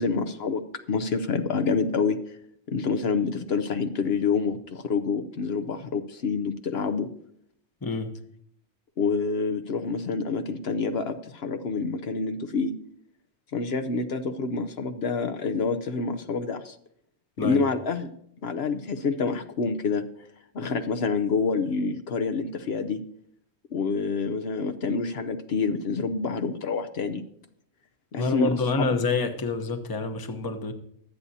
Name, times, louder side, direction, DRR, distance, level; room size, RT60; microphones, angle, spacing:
voice 1, 0.0-2.2 2.7-7.1 9.0-12.7 13.5-16.7 17.4-18.1 18.4-20.0 20.5-23.0 23.7-27.2 28.1-28.9, left 4 dB, 65° left, 8 dB, 0.9 m, -27 dB
voice 2, 7.8-8.1 17.4-17.6 28.2-30.7, left 4 dB, 20° left, 7 dB, 0.8 m, -27 dB
24.0 x 8.4 x 2.8 m, 0.68 s
omnidirectional pair, 1.2 m